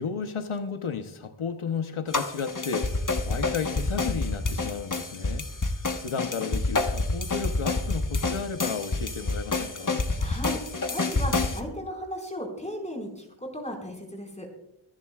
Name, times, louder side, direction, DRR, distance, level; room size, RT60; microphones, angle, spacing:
voice 1, 0.0-5.5 6.0-10.0, left 6 dB, 85° left, 7 dB, 0.9 m, -33 dB
sound 1, 2.1-11.6, left 3 dB, 40° left, 1.2 m, -28 dB
voice 2, 10.2-10.6 10.9-14.5, equal, 15° left, 1 dB, 4.9 m, -36 dB
25.5 x 10.5 x 2.4 m, 0.79 s
wide cardioid pair, 60°, 48 cm